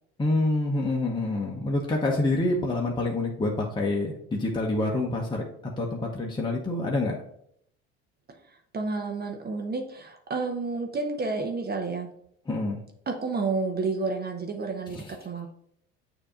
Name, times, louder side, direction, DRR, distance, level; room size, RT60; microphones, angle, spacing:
voice 1, 0.2-5.4 5.8-7.2 12.5-12.8 14.9-15.0, left 2 dB, 15° left, -2 dB, 1.0 m, -27 dB
voice 2, 8.4-12.1 13.1-15.5, right 3 dB, 30° right, 4 dB, 0.9 m, -30 dB
6.6 x 2.9 x 4.9 m, 0.70 s
hypercardioid pair, 75°, 32 cm